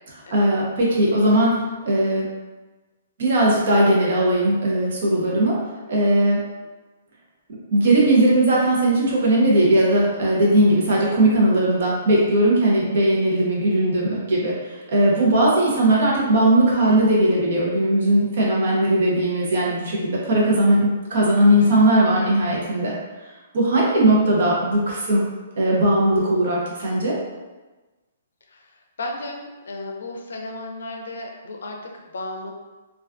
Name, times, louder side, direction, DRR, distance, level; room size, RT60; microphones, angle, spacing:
voice 1, 0.3-2.2 3.2-6.4 7.7-22.9 23.5-25.2 25.6-27.2, right 1 dB, 50° right, -4 dB, 0.6 m, -19 dB
voice 2, 29.0-32.5, left 2 dB, 85° left, 2 dB, 0.4 m, -34 dB
2.3 x 2.2 x 2.4 m, 1.2 s
hypercardioid pair, 175°, 0 cm